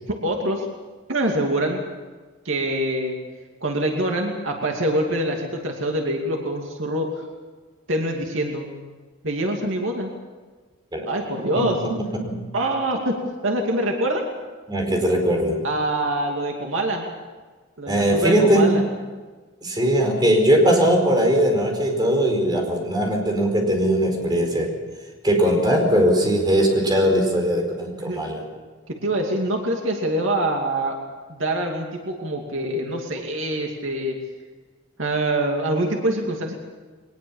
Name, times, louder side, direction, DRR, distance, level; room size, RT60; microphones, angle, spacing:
voice 1, 0.1-0.7 1.1-1.9 2.4-3.2 3.6-7.2 7.9-8.7 9.2-10.1 11.1-11.8 12.5-14.2 15.6-17.1 17.8-18.8 28.1-28.3 28.9-31.0 31.3-34.2 35.0-36.5, right 1 dB, 85° right, 1 dB, 2.6 m, -25 dB
voice 2, 11.6-12.4 14.7-15.6 17.9-18.8 19.6-24.7 25.2-28.4, equal, 20° right, 2 dB, 4.7 m, -20 dB
22.5 x 20.0 x 7.3 m, 1.4 s
head